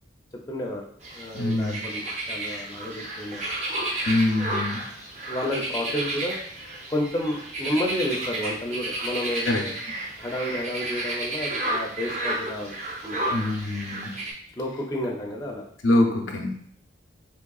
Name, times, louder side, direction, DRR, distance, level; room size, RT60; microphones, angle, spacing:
voice 1, 0.5-0.8 1.1-2.0 2.3-3.5 5.3-6.4 6.9-9.7 10.2-12.8 13.0-13.4 14.6-15.7, left 1 dB, 20° left, -1 dB, 0.4 m, -30 dB
sound 1, 1.0-14.3, right 1 dB, 35° right, 0.5 m, -32 dB
voice 2, 1.3-1.8 4.1-4.9 9.5-10.0 13.3-14.2 15.8-16.6, left 1 dB, 85° left, 2 dB, 0.6 m, -24 dB
3.6 x 3.1 x 2.3 m, 0.64 s
head